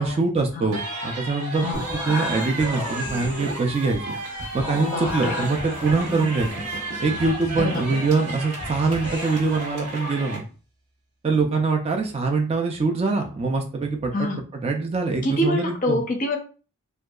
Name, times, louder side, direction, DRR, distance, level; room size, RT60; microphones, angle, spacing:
voice 1, 0.0-4.0 4.5-6.5 7.0-10.4 11.2-16.0, right 4 dB, 30° right, 3 dB, 0.3 m, -24 dB
sound 1, 0.7-10.4, right 1 dB, 85° right, 1.0 m, -34 dB
sound 2, 1.6-9.6, left 1 dB, 5° right, 0.7 m, -35 dB
sound 3, 1.7-10.6, right 1 dB, 55° right, 0.7 m, -40 dB
voice 2, 4.9-5.4 6.1-6.3 7.6-8.0 14.1-14.4 15.2-16.4, left 1 dB, 40° left, 3 dB, 0.5 m, -26 dB
2.7 x 2.2 x 2.3 m, 0.37 s
head